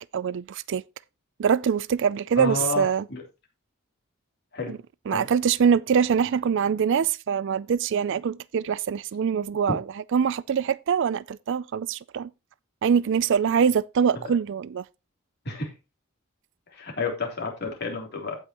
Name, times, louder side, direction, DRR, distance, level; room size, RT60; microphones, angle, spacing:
voice 1, 0.1-0.8 1.4-3.0 4.7-4.8 5.1-9.8 10.1-12.3 12.8-14.8, right 7 dB, 60° right, 0.4 m, -24 dB
voice 2, 2.4-3.2 4.5-4.8 5.1-5.3 9.7-9.8 15.4-15.7 16.7-18.4, left 3 dB, 50° left, 3.3 m, -30 dB
16.0 x 5.7 x 3.0 m
head